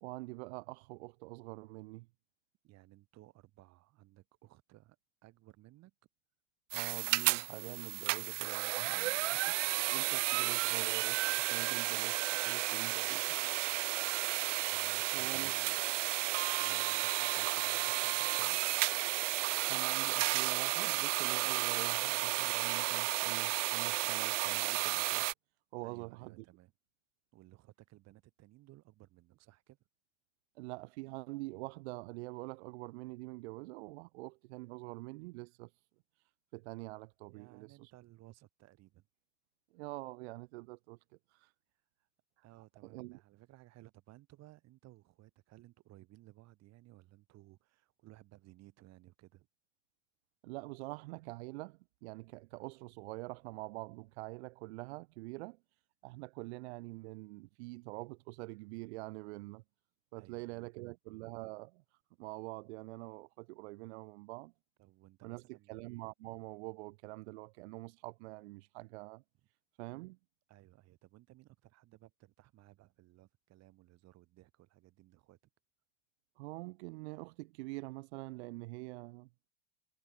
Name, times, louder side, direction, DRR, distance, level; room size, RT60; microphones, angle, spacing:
voice 1, 0.0-2.1 6.7-11.2 11.5-13.4 15.1-15.5 19.7-25.3 25.7-26.3 30.6-35.7 36.5-37.9 39.7-41.0 41.3-41.5 42.9-43.2 50.4-55.6 56.0-59.6 60.1-61.8 62.2-64.5 65.2-69.2 69.8-70.2 76.4-79.3, right 24 dB, 60° right, 1.0 m, -45 dB
voice 2, 2.6-5.9 14.7-15.8 16.6-18.7 25.8-26.7 27.3-29.8 37.3-39.1 42.0-42.1 42.4-49.5 60.2-60.9 64.8-65.8 70.5-75.4, right 17 dB, 45° right, 6.1 m, -59 dB
sound 1, 6.7-25.3, right 17 dB, 80° right, 0.6 m, -33 dB
hypercardioid pair, 105°, 36 cm